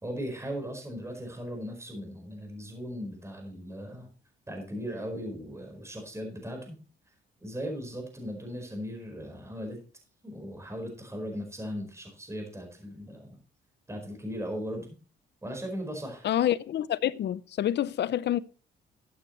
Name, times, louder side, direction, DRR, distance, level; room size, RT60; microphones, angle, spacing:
voice 1, 0.0-4.1 4.5-6.8 7.4-9.8 10.2-13.4 13.9-14.9 15.4-16.3, equal, 15° right, 4.6 m, -38 dB
voice 2, 16.2-18.4, left 11 dB, 60° left, 0.6 m, -27 dB
13.5 x 8.6 x 3.1 m
cardioid pair, 90°, 20 cm